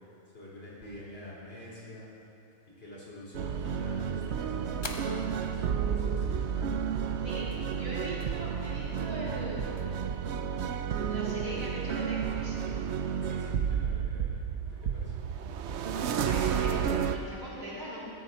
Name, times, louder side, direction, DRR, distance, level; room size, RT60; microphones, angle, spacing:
voice 1, 0.3-2.1 2.8-7.1 13.2-14.4 14.7-15.1, left 1 dB, 45° left, -6 dB, 4.3 m, -47 dB
sound 1, 2.3-10.5, left 2 dB, 25° left, 0.8 m, -51 dB
sound 2, 3.3-17.2, right 7 dB, 60° right, 0.9 m, -31 dB
voice 2, 7.7-9.8 11.1-12.6 16.2-18.0, right 1 dB, 80° right, -9 dB, 4.7 m, -40 dB
14.5 x 14.0 x 4.3 m, 2.8 s
omnidirectional pair, 1.4 m